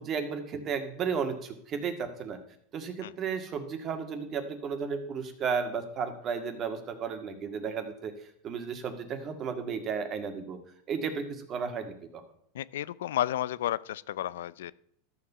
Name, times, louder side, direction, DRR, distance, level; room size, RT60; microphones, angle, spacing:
voice 1, 0.0-2.4 2.7-8.1 8.4-10.6 10.9-12.2, right 6 dB, 30° right, 7 dB, 1.9 m, -33 dB
voice 2, 12.5-14.7, left 12 dB, 90° left, 18 dB, 0.4 m, -32 dB
13.0 x 7.2 x 5.6 m, 0.69 s
supercardioid pair, 140°, 0 cm